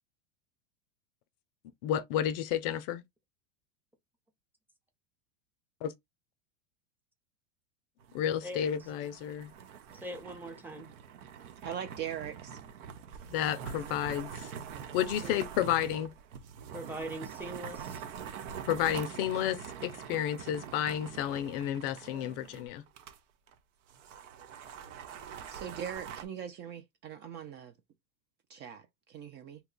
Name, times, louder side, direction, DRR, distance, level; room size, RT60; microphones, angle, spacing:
voice 1, 1.8-3.0 5.8-5.9 8.1-9.5 13.3-14.5 14.9-16.1 18.7-22.8, left 10 dB, 50° left, 0.5 m, -31 dB
sound 1, 8.0-23.2 23.5-23.6 23.9-26.2, right 7 dB, 80° right, 0.7 m, -44 dB
voice 2, 9.9-10.9 15.2-15.4 16.7-18.0, right 1 dB, 5° right, 0.7 m, -41 dB
voice 3, 11.6-12.6 25.5-27.7 28.5-29.6, right 9 dB, 30° right, 0.4 m, -41 dB
2.8 x 2.3 x 3.7 m
supercardioid pair, 130°, 37 cm